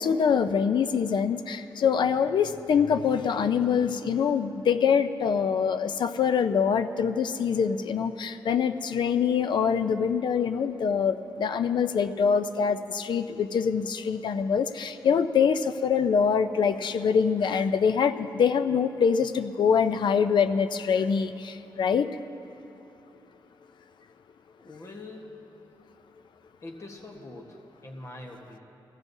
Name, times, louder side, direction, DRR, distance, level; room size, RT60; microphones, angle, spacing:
voice 1, 0.0-22.1, left 6 dB, 70° left, 10 dB, 0.5 m, -24 dB
voice 2, 24.6-25.4 26.6-28.6, left 2 dB, 40° left, 1 dB, 1.2 m, -43 dB
21.5 x 15.5 x 2.7 m, 2.9 s
cardioid pair, 90°, 8 cm